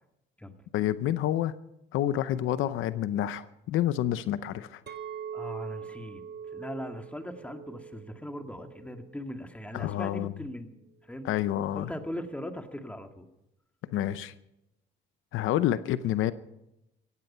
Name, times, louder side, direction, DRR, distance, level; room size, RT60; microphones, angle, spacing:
voice 1, 0.7-1.5 1.9-4.8 9.7-10.3 11.2-11.9 13.9-14.3 15.3-16.3, left 12 dB, 85° left, 14 dB, 0.7 m, -28 dB
Chink clink, 4.9-9.2 9.7-10.0, right 7 dB, 60° right, 1.7 m, -43 dB
voice 2, 5.3-6.2 6.5-10.7 11.1-11.3 11.7-13.3, equal, 5° left, 5 dB, 2.0 m, -39 dB
16.0 x 16.0 x 5.6 m, 0.86 s
cardioid pair, 90°, 20 cm